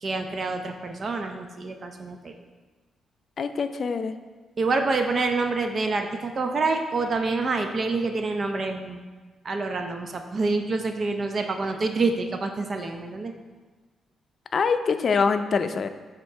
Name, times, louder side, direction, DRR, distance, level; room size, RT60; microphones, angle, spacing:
voice 1, 0.0-2.3 4.6-9.0 9.4-13.3, right 3 dB, 45° right, 5 dB, 0.6 m, -27 dB
voice 2, 3.4-4.1 14.5-15.9, left 5 dB, 50° left, 9 dB, 0.5 m, -24 dB
10.5 x 3.7 x 4.5 m, 1.3 s
cardioid pair, 85°, 0 cm